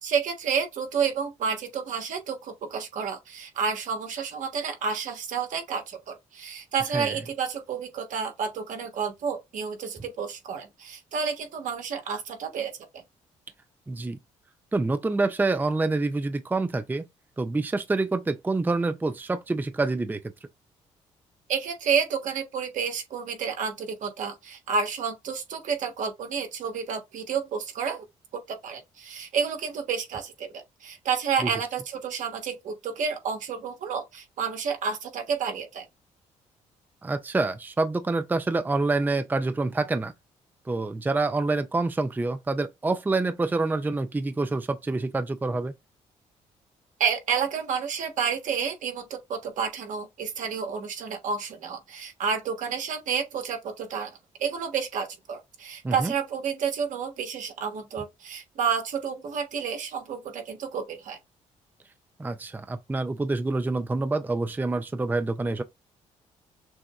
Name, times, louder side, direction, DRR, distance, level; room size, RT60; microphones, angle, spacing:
voice 1, 0.0-13.0 21.5-28.0 28.3-35.8 47.0-54.1 54.4-61.2, right 6 dB, 70° right, 1.4 m, -30 dB
voice 2, 13.9-14.2 14.7-17.0 17.4-20.2 31.4-31.5 37.0-40.1 40.7-45.7 55.8-56.1 62.2-65.6, right 3 dB, 15° right, 0.5 m, -27 dB
6.2 x 2.2 x 3.0 m
cardioid pair, 85°, 14 cm